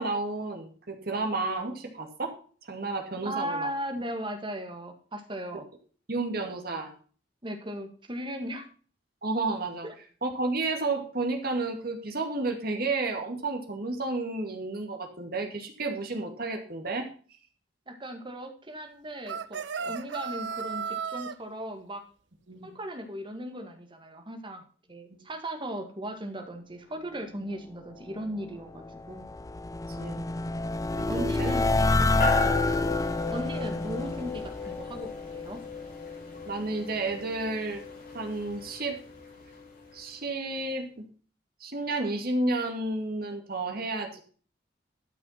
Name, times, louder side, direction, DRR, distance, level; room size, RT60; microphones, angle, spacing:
voice 1, 0.0-2.3 2.6-3.7 6.1-6.9 9.2-9.9 10.2-17.1 19.9-20.0 22.5-22.7 25.1-25.2 29.9-30.2 30.9-31.5 32.3-32.6 36.4-37.8 38.1-39.0 39.9-41.0 41.6-44.2, right 2 dB, 60° right, 4 dB, 2.4 m, -31 dB
voice 2, 3.2-5.7 7.4-8.7 9.8-9.9 17.9-22.0 22.6-24.6 24.9-29.3 31.1-31.7 33.3-35.6, equal, 30° right, 6 dB, 1.9 m, -37 dB
sound 1, 19.3-21.4, right 6 dB, 85° right, 0.7 m, -34 dB
sound 2, 28.5-35.7, left 2 dB, 20° left, 0.4 m, -28 dB
sound 3, 32.2-39.9, left 4 dB, 55° left, 7.0 m, -35 dB
12.5 x 6.0 x 5.8 m, 0.42 s
head